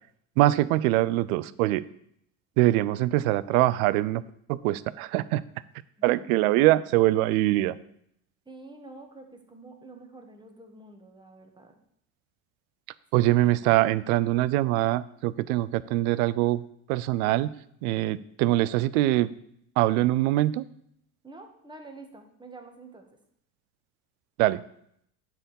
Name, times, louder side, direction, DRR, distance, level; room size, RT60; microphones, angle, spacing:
voice 1, 0.4-1.8 2.6-4.2 4.5-5.4 6.0-7.8 13.1-16.6 16.9-17.5 17.8-19.3 19.8-20.6 24.4-24.6, right 16 dB, 85° right, 18 dB, 0.6 m, -23 dB
voice 2, 6.0-6.4 8.5-11.8 13.2-13.3 21.2-23.1, right 3 dB, 10° right, 3 dB, 1.7 m, -47 dB
8.8 x 4.8 x 7.0 m, 0.71 s
supercardioid pair, 90°, 41 cm